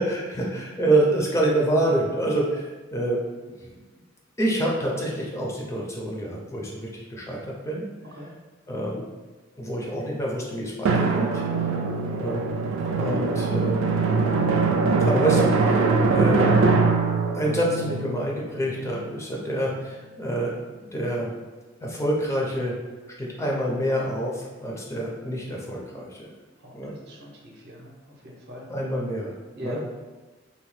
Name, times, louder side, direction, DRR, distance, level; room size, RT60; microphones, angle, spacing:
voice 1, 0.0-3.7 4.4-7.8 8.7-9.0 9.6-11.4 12.2-12.4 13.0-14.0 14.9-16.6 17.3-20.5 20.9-21.3 21.8-22.8 23.2-26.3 26.7-27.0 28.7-29.4 29.6-29.8, right 1 dB, 15° left, -3 dB, 0.4 m, -27 dB
Drum, 10.8-19.1, right 4 dB, 85° right, 0.3 m, -22 dB
voice 2, 26.6-28.7 29.6-29.8, equal, 55° right, -2 dB, 0.6 m, -41 dB
2.7 x 2.1 x 3.1 m, 1.3 s
head